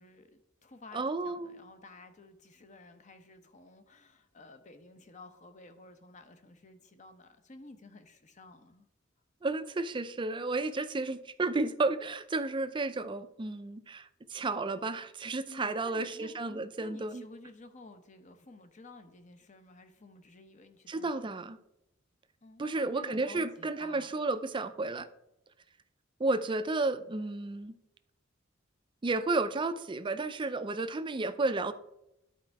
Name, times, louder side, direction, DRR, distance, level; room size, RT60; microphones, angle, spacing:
voice 1, 0.0-8.9 15.5-21.4 22.4-24.1, left 2 dB, 35° left, 8 dB, 0.8 m, -53 dB
voice 2, 0.9-1.6 9.4-17.2 20.9-21.6 22.6-25.1 26.2-27.8 29.0-31.7, right 3 dB, 25° right, 11 dB, 0.4 m, -32 dB
11.5 x 4.4 x 4.6 m, 0.86 s
head